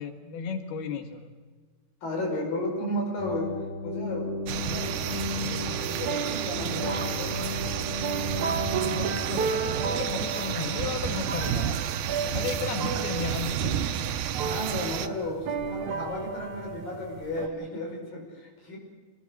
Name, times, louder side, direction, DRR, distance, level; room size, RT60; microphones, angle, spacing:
voice 1, 0.0-1.3 8.9-11.8 12.3-13.8, left 6 dB, 90° left, 6 dB, 3.7 m, -34 dB
voice 2, 2.0-3.5 3.8-5.0 5.6-7.4 14.5-18.8, left 1 dB, 65° left, 1 dB, 7.2 m, -33 dB
sound 1, 3.2-10.3, left 3 dB, 20° left, 2.6 m, -35 dB
sound 2, 4.5-15.1, right 9 dB, 85° right, 2.8 m, -31 dB
sound 3, 5.6-17.5, right 5 dB, 60° right, 2.6 m, -34 dB
26.0 x 20.5 x 6.6 m, 1.4 s
omnidirectional pair, 4.3 m